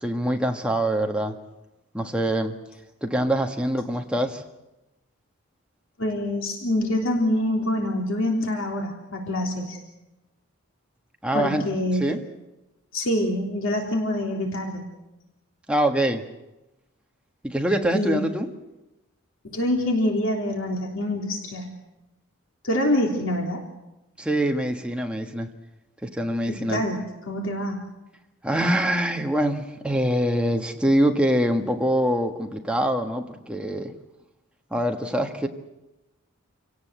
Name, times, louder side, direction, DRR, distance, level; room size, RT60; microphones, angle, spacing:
voice 1, 0.0-1.4 1.9-2.6 3.0-4.4 11.2-11.6 12.0-12.2 15.7-16.2 17.4-18.5 24.2-25.5 26.0-26.8 28.4-33.9 34.7-35.5, right 1 dB, 5° right, 3 dB, 1.6 m, -24 dB
voice 2, 6.0-9.8 11.3-12.1 12.9-14.9 17.9-18.3 19.4-21.7 22.6-23.6 26.5-27.9, left 1 dB, 65° left, 1 dB, 3.5 m, -26 dB
28.0 x 18.0 x 8.2 m, 1.0 s
head